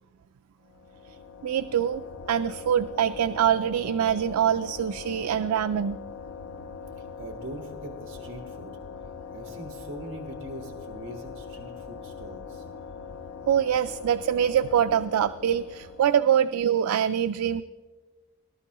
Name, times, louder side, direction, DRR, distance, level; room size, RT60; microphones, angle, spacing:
sound 1, 0.7-16.5, left 6 dB, 60° left, 0.6 m, -42 dB
voice 1, 1.4-6.0 13.5-17.6, right 9 dB, 75° right, 11 dB, 0.3 m, -24 dB
voice 2, 6.7-8.7 9.3-12.6, right 1 dB, 50° right, 2 dB, 1.2 m, -42 dB
19.0 x 12.0 x 3.0 m, 1.3 s
head